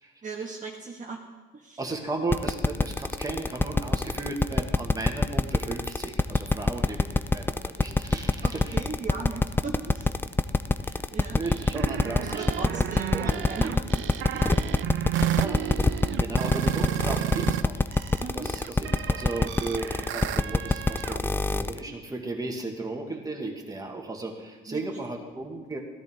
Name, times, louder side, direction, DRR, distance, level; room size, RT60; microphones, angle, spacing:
voice 1, 0.2-1.2 1.5-1.8 8.4-10.1 10.7-11.4 12.3-14.0 14.3-14.7 16.0-16.3 18.2-18.5 24.7-24.8, right 4 dB, 40° right, -1 dB, 1.5 m, -38 dB
voice 2, 1.8-8.8 11.3-13.7 15.4-15.9 16.2-17.8 18.3-25.8, right 2 dB, 20° right, 1 dB, 1.9 m, -35 dB
sound 1, 2.3-21.8, left 3 dB, 10° left, 0.5 m, -24 dB
sound 2, 11.4-17.6 17.9-21.2, right 13 dB, 75° right, 0.5 m, -32 dB
13.5 x 13.0 x 3.7 m, 1.2 s
cardioid pair, 95°, 20 cm